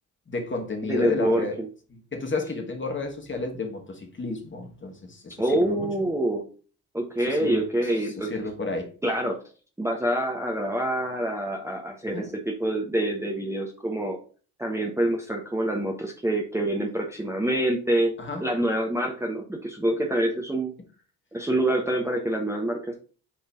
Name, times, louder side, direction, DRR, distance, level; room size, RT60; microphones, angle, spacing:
voice 1, 0.3-1.6 1.9-5.9 7.3-8.9 12.1-12.3 18.2-18.5, left 3 dB, 25° left, 1.8 m, -32 dB
voice 2, 0.8-1.7 5.4-6.4 6.9-8.3 9.0-9.4 9.8-14.2 14.6-20.7 21.3-22.9, right 1 dB, 5° right, 1.1 m, -26 dB
7.4 x 3.9 x 3.7 m
figure-of-eight pair, 50°, 48 cm